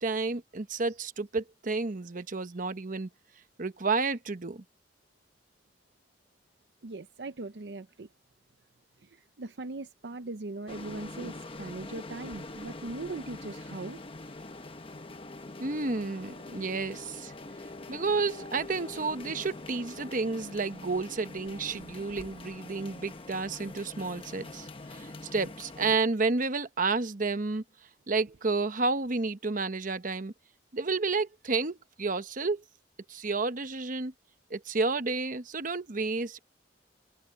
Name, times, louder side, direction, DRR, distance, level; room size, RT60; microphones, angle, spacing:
voice 1, 0.0-3.1 3.6-4.6 15.6-17.3 17.9-27.6 28.1-30.3 30.7-32.6 33.1-34.1 34.5-36.4, right 3 dB, 50° right, 1.0 m, -31 dB
voice 2, 6.8-8.1 9.0-14.0, right 2 dB, 70° right, 0.7 m, -40 dB
sound 1, 10.7-26.0, left 2 dB, 30° left, 1.1 m, -44 dB
head